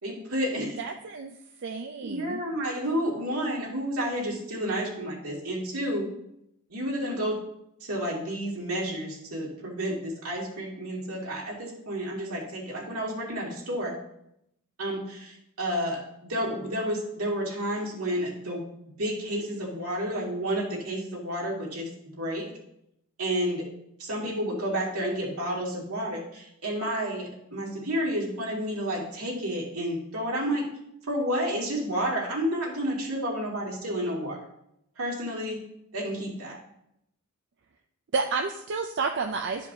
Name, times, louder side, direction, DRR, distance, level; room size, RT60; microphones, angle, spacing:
voice 1, 0.0-0.8 2.0-6.1 6.7-7.4 7.8-13.9 14.8-18.7 19.0-21.9 22.2-22.5 23.2-23.6 24.0-30.7 31.1-34.4 35.0-35.6 35.9-36.6, equal, 80° right, -3 dB, 2.4 m, -30 dB
voice 2, 0.8-2.4 38.1-39.7, right 4 dB, 55° right, 4 dB, 0.5 m, -31 dB
12.5 x 5.1 x 2.8 m, 0.77 s
head